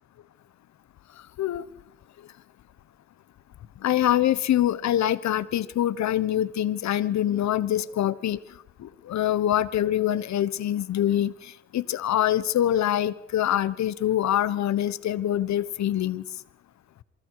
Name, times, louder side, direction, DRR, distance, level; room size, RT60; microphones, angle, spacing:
voice 1, 3.8-8.4 8.8-16.2, left 11 dB, 65° left, 18 dB, 1.2 m, -25 dB
27.5 x 24.0 x 4.9 m, 0.77 s
cardioid pair, 90°, 30 cm